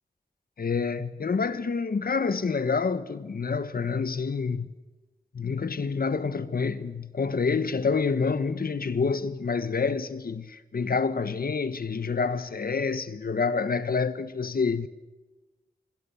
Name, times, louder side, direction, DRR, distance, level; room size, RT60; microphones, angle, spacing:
voice 1, 0.6-4.7 5.3-14.9, left 5 dB, 65° left, 1.2 m, -27 dB
27.0 x 22.0 x 7.1 m
wide cardioid pair, 85°, 16 cm